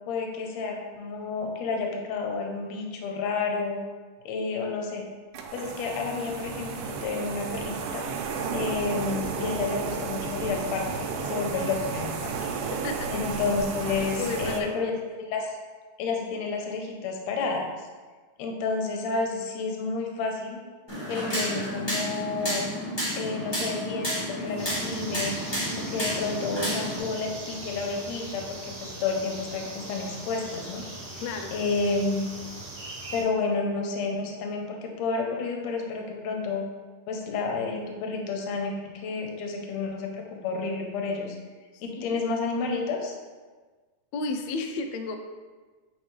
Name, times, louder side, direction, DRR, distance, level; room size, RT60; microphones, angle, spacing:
voice 1, 0.1-3.8 4.3-5.0 5.5-8.0 8.5-12.5 13.1-15.5 16.0-17.7 18.4-20.6 21.1-22.7 23.1-24.1 24.4-25.4 25.8-30.8 31.5-32.3 33.1-36.7 37.1-41.4 41.8-43.2, left 4 dB, 70° left, 2 dB, 1.8 m, -30 dB
sound 1, 5.3-14.6, right 5 dB, 85° right, 2.2 m, -32 dB
voice 2, 12.7-13.1 14.2-14.8 31.2-31.6 41.7-41.8 42.1-42.2 44.1-45.2, left 3 dB, 85° left, 5 dB, 1.5 m, -32 dB
sound 2, 20.9-27.0, equal, 15° left, 0.8 m, -31 dB
sound 3, 24.6-33.2, right 2 dB, 60° right, 1.0 m, -40 dB
7.8 x 4.0 x 3.2 m, 1.4 s
omnidirectional pair, 3.7 m